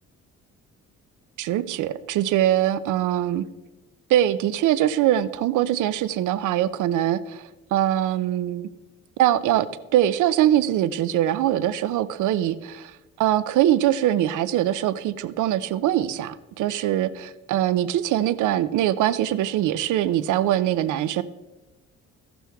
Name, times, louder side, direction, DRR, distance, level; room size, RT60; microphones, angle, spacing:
voice 1, 1.4-3.5 4.1-8.7 9.2-21.2, right 12 dB, 80° right, 14 dB, 0.6 m, -23 dB
15.5 x 6.1 x 3.4 m, 1.1 s
cardioid pair, 90°, 30 cm